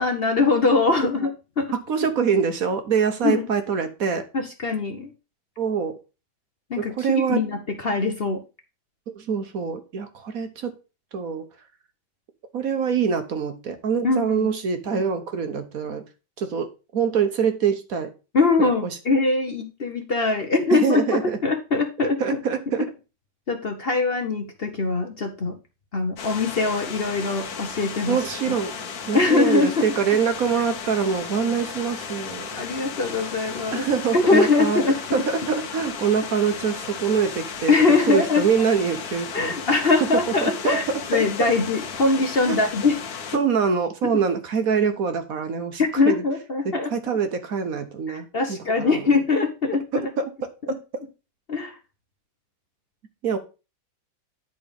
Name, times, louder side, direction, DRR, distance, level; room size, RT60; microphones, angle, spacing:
voice 1, 0.0-1.7 3.2-3.4 4.3-5.1 6.7-8.4 14.0-14.5 18.3-22.2 23.5-25.6 25.9-28.2 29.1-29.8 32.5-33.9 34.1-35.2 37.7-38.4 39.3-40.8 41.1-43.0 45.8-46.9 48.1-50.1 51.5-51.8, left 3 dB, 40° left, 5 dB, 1.0 m, -22 dB
voice 2, 1.9-4.2 5.6-6.0 6.8-7.4 9.1-10.7 11.1-11.5 12.5-16.0 16.4-18.1 18.6-18.7 20.7-21.4 22.2-22.9 28.1-28.8 29.1-32.6 33.7-34.8 35.1-37.7 38.1-39.5 40.1-41.2 42.5-42.6 43.3-46.2 46.6-49.0 50.2-50.3 53.2-53.4, right 6 dB, 60° right, 7 dB, 1.3 m, -24 dB
sound 1, 26.2-43.4, left 6 dB, 60° left, 1.5 m, -35 dB
10.5 x 4.1 x 5.2 m, 0.31 s
omnidirectional pair, 1.8 m